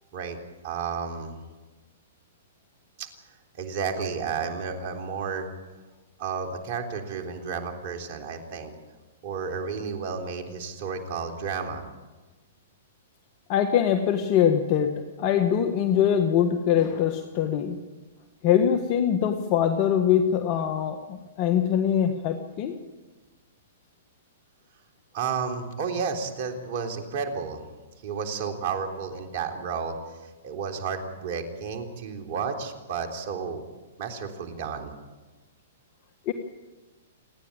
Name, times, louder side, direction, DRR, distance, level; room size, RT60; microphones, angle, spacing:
voice 1, 0.6-1.4 3.0-3.1 3.6-5.5 6.2-8.7 9.2-11.9 25.1-27.6 28.0-30.0 30.2-33.6 34.0-34.9, right 6 dB, 50° right, 4 dB, 3.5 m, -32 dB
voice 2, 13.5-17.8 18.4-22.7 36.2-36.3, left 9 dB, 40° left, 6 dB, 1.5 m, -23 dB
28.5 x 10.5 x 8.9 m, 1.2 s
hypercardioid pair, 130°, 0 cm